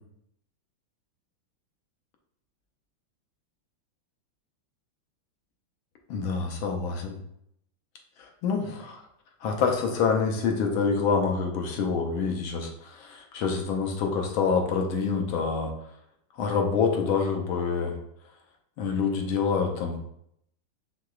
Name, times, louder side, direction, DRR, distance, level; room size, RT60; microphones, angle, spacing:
voice 1, 6.1-7.2 8.4-9.0 9.4-15.7 16.4-17.9 18.8-20.0, left 5 dB, 90° left, 3 dB, 1.5 m, -26 dB
4.8 x 3.7 x 2.4 m, 0.74 s
omnidirectional pair, 2.2 m